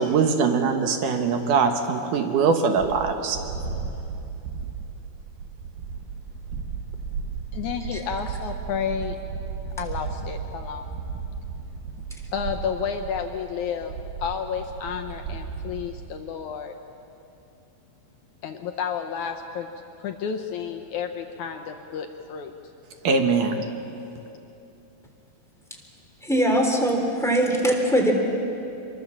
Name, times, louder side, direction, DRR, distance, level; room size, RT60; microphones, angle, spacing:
voice 1, 0.0-3.4 23.0-23.7, right 5 dB, 70° right, 5 dB, 2.7 m, -22 dB
sound 1, 2.8-16.0, right 5 dB, 90° right, 3.2 m, -35 dB
voice 2, 7.5-9.2 9.8-10.9 12.3-13.9 14.2-16.7 18.4-19.7 20.0-22.5, left 7 dB, 70° left, 5 dB, 2.1 m, -31 dB
voice 3, 26.2-28.1, right 1 dB, ahead, 1 dB, 2.9 m, -21 dB
25.5 x 24.0 x 7.2 m, 2.9 s
omnidirectional pair, 4.0 m